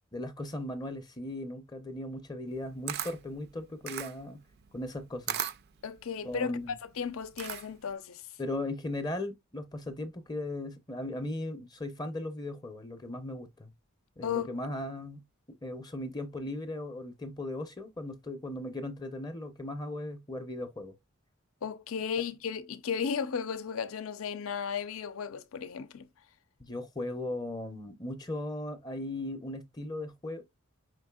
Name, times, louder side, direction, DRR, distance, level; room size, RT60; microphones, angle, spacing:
voice 1, 0.1-4.4 4.7-5.4 6.2-6.7 8.4-13.7 14.2-15.2 15.6-20.9 26.6-30.4, left 1 dB, 20° left, 0.5 m, -37 dB
Camera, 2.5-7.9, right 9 dB, 50° right, 0.4 m, -38 dB
voice 2, 5.8-8.2 14.2-14.5 21.6-26.1, left 6 dB, 75° left, 0.5 m, -34 dB
5.1 x 3.4 x 2.2 m
head